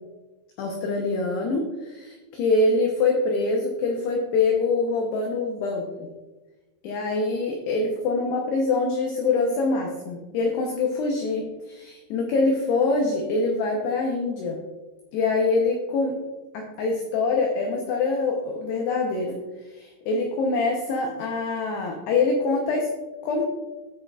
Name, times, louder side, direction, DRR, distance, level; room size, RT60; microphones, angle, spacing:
voice 1, 0.6-6.1 6.8-14.6 15.1-16.1 16.5-19.4 19.7-22.9 23.2-23.4, left 3 dB, 85° left, 1 dB, 2.3 m, -24 dB
14.0 x 6.5 x 2.4 m, 1.2 s
omnidirectional pair, 6.0 m